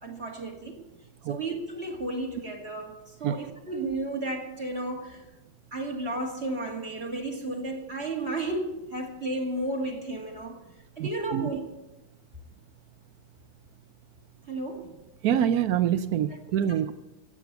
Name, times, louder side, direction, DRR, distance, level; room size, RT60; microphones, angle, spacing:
voice 1, 0.0-0.8 1.3-5.3 5.7-10.6 11.0-11.6 14.5-15.0 16.7-16.8, right 2 dB, 30° right, 0 dB, 2.4 m, -33 dB
voice 2, 11.0-11.5 15.2-16.9, right 9 dB, 80° right, 13 dB, 0.8 m, -25 dB
15.0 x 8.5 x 8.0 m, 1.0 s
omnidirectional pair, 2.2 m